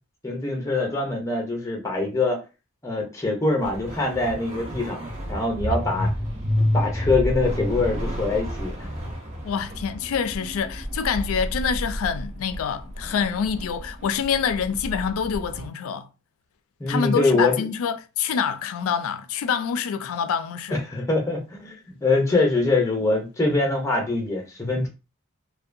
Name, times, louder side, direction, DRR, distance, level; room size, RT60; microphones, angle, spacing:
voice 1, 0.2-2.4 2.8-5.0 5.3-6.1 6.7-8.7 16.8-17.6 20.7-24.9, left 2 dB, 15° left, 0.6 m, -24 dB
sound 1, 3.6-15.7, equal, 30° right, 0.6 m, -30 dB
voice 2, 9.4-16.1 16.9-20.8, left 7 dB, 75° left, 0.3 m, -26 dB
2.6 x 2.1 x 2.5 m
head